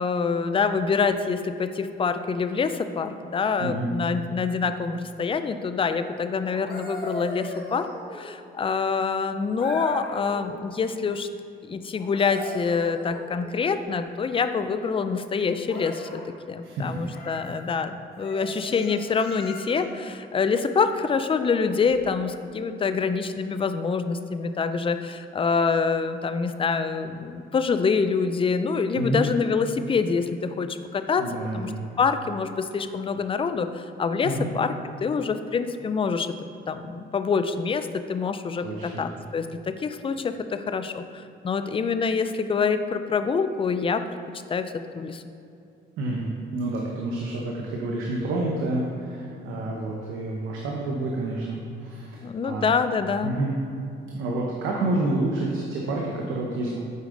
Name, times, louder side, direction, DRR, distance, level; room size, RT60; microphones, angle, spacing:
voice 1, 0.0-11.3 11.7-16.2 16.5-31.7 32.0-34.7 35.0-36.3 36.7-44.1 44.5-45.2 52.2-53.4, left 5 dB, 25° left, 10 dB, 0.4 m, -26 dB
voice 2, 3.6-4.0 16.6-17.1 28.9-29.3 31.2-31.8 34.2-34.5 38.6-39.0 46.0-52.7 53.2-53.6 54.1-56.8, right 2 dB, 85° right, -2 dB, 0.9 m, -29 dB
sound 1, 6.4-8.4 9.6-10.5 11.9-13.6 15.6-16.3 17.1-17.5 18.2-20.0 21.8-22.0, left 2 dB, 50° left, 1.5 m, -38 dB
8.1 x 5.0 x 3.8 m, 2.6 s
cardioid pair, 90°, 20 cm